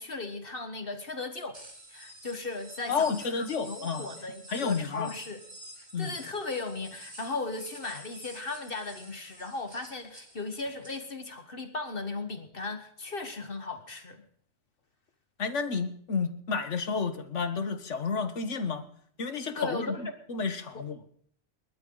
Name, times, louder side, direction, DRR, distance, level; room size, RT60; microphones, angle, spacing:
voice 1, 0.0-1.6 1.9-5.4 6.0-14.2 19.5-20.1 20.7-20.9, left 3 dB, 45° left, 7 dB, 1.6 m, -37 dB
sound 1, 1.5-11.0, right 1 dB, 35° right, 3.9 m, -49 dB
voice 2, 2.9-4.1 4.5-5.1 5.9-6.1 15.4-18.8 19.2-21.0, left 5 dB, 70° left, 10 dB, 1.6 m, -31 dB
28.5 x 12.5 x 3.9 m, 0.62 s
omnidirectional pair, 1.3 m